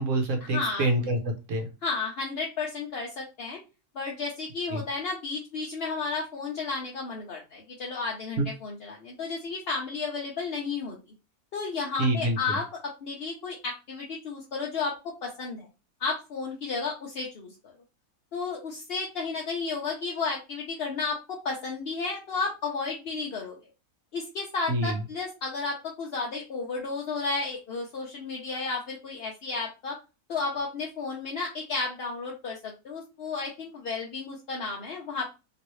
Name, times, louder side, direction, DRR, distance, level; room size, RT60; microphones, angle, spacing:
voice 1, 0.0-1.7 4.7-4.8 8.4-8.5 12.0-12.6 24.7-25.0, right 2 dB, 60° right, 4 dB, 1.1 m, -26 dB
voice 2, 0.5-0.9 1.8-3.6 3.9-11.0 11.5-15.0 15.2-15.7 16.0-17.7 18.3-23.6 24.1-30.0 30.3-35.3, left 4 dB, 50° left, -2 dB, 0.8 m, -32 dB
3.0 x 2.9 x 3.0 m, 0.28 s
omnidirectional pair, 1.6 m